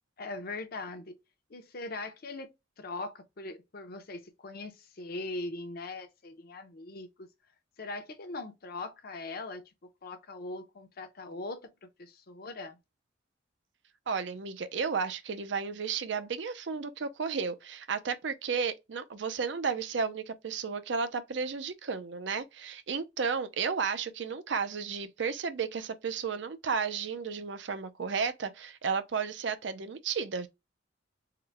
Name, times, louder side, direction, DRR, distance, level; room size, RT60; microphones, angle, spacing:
voice 1, 0.2-1.2 1.5-2.5 2.8-7.3 7.8-12.8, left 2 dB, 55° left, 0.7 m, -41 dB
voice 2, 14.1-30.5, right 5 dB, 70° right, 0.5 m, -33 dB
3.8 x 2.1 x 3.2 m
head